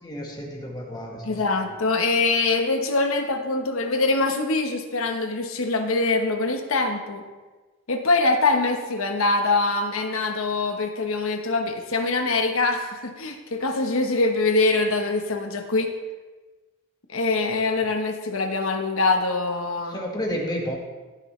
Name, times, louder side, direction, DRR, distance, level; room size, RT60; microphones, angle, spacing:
voice 1, 0.0-1.4 19.8-20.8, equal, 20° left, -1 dB, 1.6 m, -31 dB
voice 2, 1.2-7.2 7.9-15.9 17.1-20.0, left 3 dB, 75° left, 5 dB, 1.2 m, -23 dB
16.5 x 6.9 x 3.3 m, 1.3 s
head